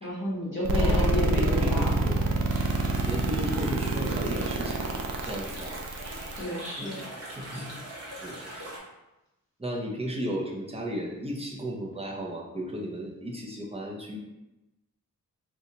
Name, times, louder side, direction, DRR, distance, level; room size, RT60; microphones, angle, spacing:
voice 1, 0.0-1.9 6.4-7.0, equal, 30° left, -9 dB, 0.9 m, -31 dB
sound 1, 0.6-6.4, right 2 dB, 75° right, 0.5 m, -26 dB
voice 2, 0.7-2.2 3.1-5.9 6.8-7.7 8.2-8.7 9.6-14.2, equal, 15° right, -2 dB, 0.6 m, -35 dB
sound 2, 2.5-8.8, right 1 dB, 45° right, 1.0 m, -41 dB
4.0 x 2.3 x 2.8 m, 0.98 s
wide cardioid pair, 120°, 36 cm